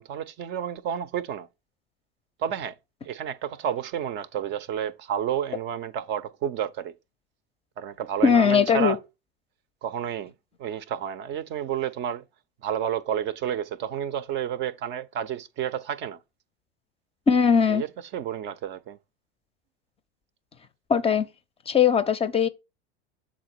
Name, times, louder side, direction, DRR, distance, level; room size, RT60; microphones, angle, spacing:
voice 1, 0.0-1.5 2.4-2.7 3.0-6.9 7.8-9.0 9.8-10.3 10.6-12.2 12.6-16.2 17.7-19.0, right 9 dB, 35° right, 0.6 m, -30 dB
voice 2, 8.2-9.0 17.3-17.8 20.9-21.3 21.7-22.5, left 6 dB, 20° left, 0.6 m, -20 dB
7.4 x 4.1 x 4.3 m
figure-of-eight pair, 85°, 33 cm